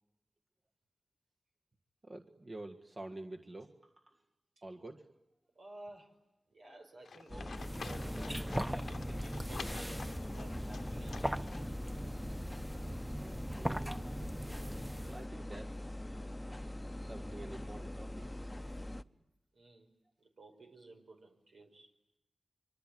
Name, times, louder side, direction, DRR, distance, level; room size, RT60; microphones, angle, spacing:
voice 1, 2.0-4.2 4.6-5.1 12.9-14.5 15.0-16.0 17.0-18.7, right 2 dB, 45° right, 2 dB, 1.7 m, -49 dB
voice 2, 5.6-6.1 6.5-11.7 19.5-19.9 20.2-21.9, right 2 dB, 85° right, 3 dB, 5.2 m, -54 dB
Livestock farm animals working animals, 7.0-12.0, left 5 dB, 85° left, 1.0 m, -50 dB
sound 1, 7.3-19.0, left 1 dB, 15° left, 0.9 m, -43 dB
sound 2, 7.6-15.3, right 1 dB, 10° right, 1.1 m, -40 dB
25.5 x 25.0 x 9.2 m, 0.94 s
cardioid pair, 60°, 0 cm